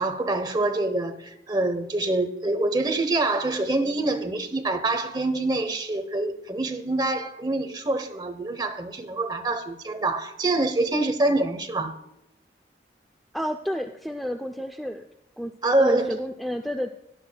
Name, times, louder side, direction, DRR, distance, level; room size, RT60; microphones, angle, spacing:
voice 1, 0.0-11.9 15.6-16.2, right 2 dB, 25° right, 0.8 m, -25 dB
voice 2, 13.3-15.1 15.4-16.9, equal, ahead, 0.4 m, -31 dB
17.5 x 10.5 x 2.3 m
head